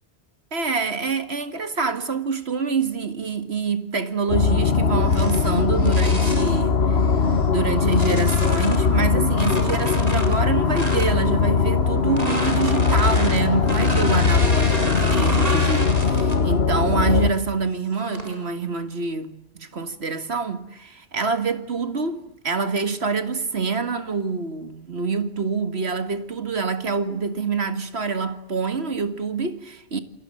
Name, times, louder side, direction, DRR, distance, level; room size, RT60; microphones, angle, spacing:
voice 1, 0.5-30.0, right 4 dB, 75° right, 2.2 m, -26 dB
sound 1, 4.3-17.3, left 5 dB, 70° left, 1.7 m, -20 dB
sound 2, 5.0-6.6 7.2-8.9 9.3-11.2 12.0-16.5 16.9-17.3 17.9-18.4, right 1 dB, 35° right, 4.4 m, -32 dB
29.0 x 21.5 x 7.7 m
omnidirectional pair, 1.1 m